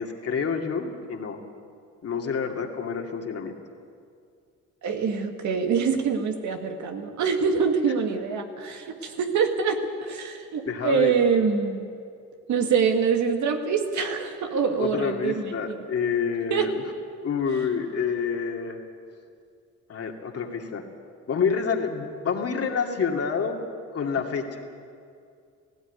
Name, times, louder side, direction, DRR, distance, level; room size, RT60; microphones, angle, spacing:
voice 1, 0.0-1.4 2.0-3.5 10.7-11.1 14.8-16.7 17.2-18.8 19.9-20.8 21.3-23.6 23.9-24.6, left 6 dB, 50° left, 2 dB, 2.5 m, -28 dB
voice 2, 4.8-11.9 12.5-15.8 16.5-16.7, right 6 dB, 70° right, 4 dB, 2.2 m, -25 dB
17.0 x 16.0 x 9.6 m, 2.3 s
cardioid pair, 90°, 30 cm